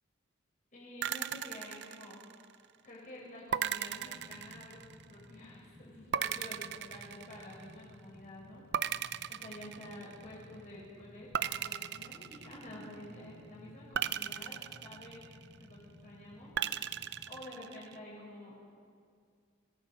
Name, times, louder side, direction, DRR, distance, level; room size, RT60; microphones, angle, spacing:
voice 1, 0.7-15.2 15.6-18.5, left 1 dB, 40° left, -6 dB, 5.9 m, -50 dB
sound 1, 1.0-2.6 3.5-5.1 6.1-7.8 8.7-10.3 11.3-13.0 13.9-15.6 16.6-18.0, right 9 dB, 60° right, 0.6 m, -37 dB
sound 2, 3.8-17.2, equal, 90° right, 6.1 m, -57 dB
27.0 x 19.0 x 6.5 m, 2.2 s
head